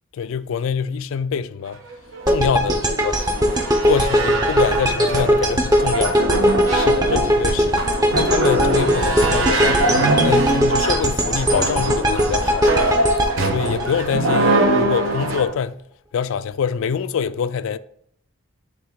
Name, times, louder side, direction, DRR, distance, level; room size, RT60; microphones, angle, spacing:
voice 1, 0.1-1.8 2.3-3.3 3.8-6.2 6.7-7.7 8.1-9.9 10.2-12.9 13.5-15.8 16.1-17.8, left 7 dB, 70° left, 0.3 m, -25 dB
sound 1, 1.9-15.4, right 2 dB, 70° right, 1.1 m, -23 dB
sound 2, 2.3-14.4, equal, 20° right, 0.6 m, -20 dB
8.9 x 3.6 x 3.7 m
head